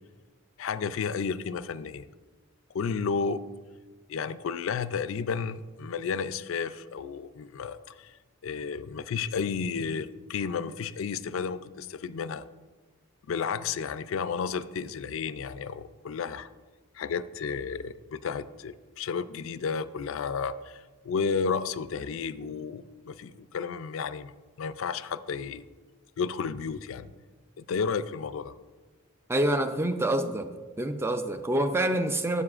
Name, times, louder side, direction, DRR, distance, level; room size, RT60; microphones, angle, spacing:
voice 1, 0.6-2.1 2.7-3.4 4.1-8.1 8.4-12.4 13.3-16.5 16.9-24.3 24.6-25.7 26.2-27.1 27.6-28.5, left 5 dB, 65° left, 15 dB, 0.3 m, -32 dB
voice 2, 29.3-30.5 30.8-32.4, right 1 dB, 10° right, 9 dB, 0.4 m, -26 dB
12.5 x 8.2 x 2.4 m, 1.3 s
head